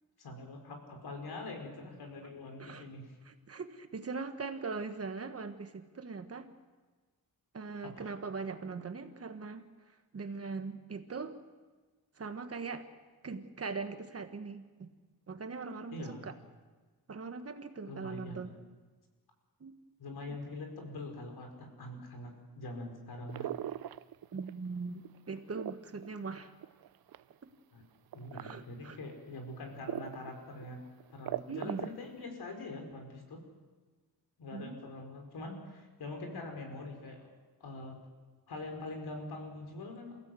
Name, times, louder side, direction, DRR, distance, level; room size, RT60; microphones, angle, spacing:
voice 1, 0.2-3.1 7.8-8.1 15.9-16.3 17.8-18.6 20.0-23.5 27.7-27.8 28.1-30.8 31.1-33.4 34.4-37.3 37.6-38.0 38.5-40.2, left 2 dB, 75° left, 3 dB, 4.9 m, -44 dB
voice 2, 3.2-6.5 7.5-9.6 10.1-11.4 12.2-12.9 13.2-14.9 15.3-16.3 17.1-18.6 19.6-19.7 20.3-20.4 24.3-26.5 28.3-29.0 31.5-31.9 34.5-34.8, right 4 dB, 40° right, 8 dB, 1.4 m, -41 dB
sound 1, 23.3-24.7 25.0-27.3 28.1-28.6 29.1-29.2 29.9-30.3 30.6-30.7 31.0-32.1, right 11 dB, 65° right, 0.6 m, -39 dB
28.5 x 16.0 x 7.7 m, 1.4 s
wide cardioid pair, 160°, 38 cm